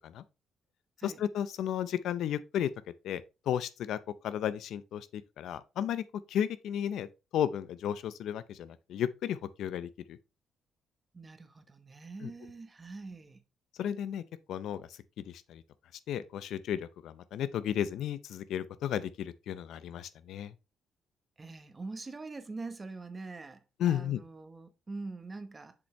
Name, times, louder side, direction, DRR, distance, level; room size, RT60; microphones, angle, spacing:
voice 1, 1.0-2.7 3.0-4.0 4.2-6.0 6.3-7.1 7.3-10.2 12.2-12.3 13.8-14.2 14.5-14.8 15.3-15.6 16.1-20.5 23.8-24.2, left 10 dB, 75° left, 0.5 m, -33 dB
voice 2, 11.1-13.4 21.4-25.7, right 3 dB, 30° right, 1.0 m, -44 dB
6.9 x 5.1 x 3.1 m
cardioid pair, 90°, 0 cm